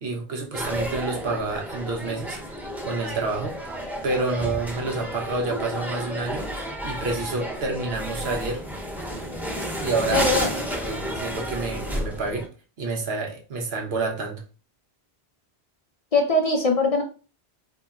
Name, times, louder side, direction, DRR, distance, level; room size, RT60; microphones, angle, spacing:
voice 1, 0.0-2.6 2.8-3.8 4.0-8.6 9.8-10.4 10.8-12.5 12.8-14.4, right 3 dB, 75° right, 1 dB, 1.1 m, -29 dB
sound 1, 0.5-12.5, equal, ahead, 0.9 m, -32 dB
voice 2, 10.1-10.5 16.1-17.0, left 2 dB, 45° left, 2 dB, 0.6 m, -21 dB
4.0 x 2.9 x 2.4 m, 0.35 s
omnidirectional pair, 1.1 m